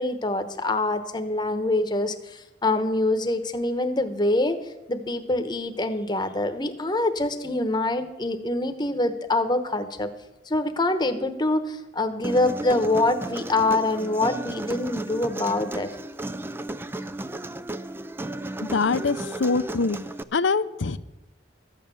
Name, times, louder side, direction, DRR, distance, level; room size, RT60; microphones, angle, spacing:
voice 1, 0.0-4.6 4.9-10.1 10.5-15.9, left 2 dB, 20° left, 8 dB, 1.0 m, -25 dB
Human voice, 12.2-20.2, right 1 dB, 10° right, 0.4 m, -34 dB
voice 2, 18.6-20.0 20.3-21.0, left 4 dB, 70° left, 14 dB, 0.6 m, -24 dB
14.0 x 9.0 x 6.9 m, 0.95 s
head